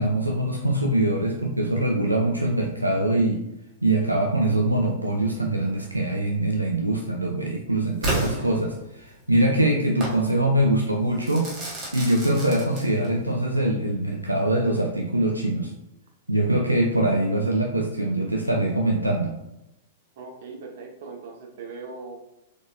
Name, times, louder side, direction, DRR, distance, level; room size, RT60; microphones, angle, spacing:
voice 1, 0.0-3.4 3.8-11.5 11.9-15.7 16.3-19.3, right 1 dB, 90° right, 1 dB, 0.5 m, -23 dB
Crackle / Fireworks, 8.0-9.2 10.0-10.2 11.2-13.2, right 1 dB, 35° right, 1.6 m, -31 dB
voice 2, 20.2-22.2, right 4 dB, 55° right, 3 dB, 0.9 m, -39 dB
5.0 x 4.1 x 2.6 m, 0.90 s
figure-of-eight pair, 100°, 0 cm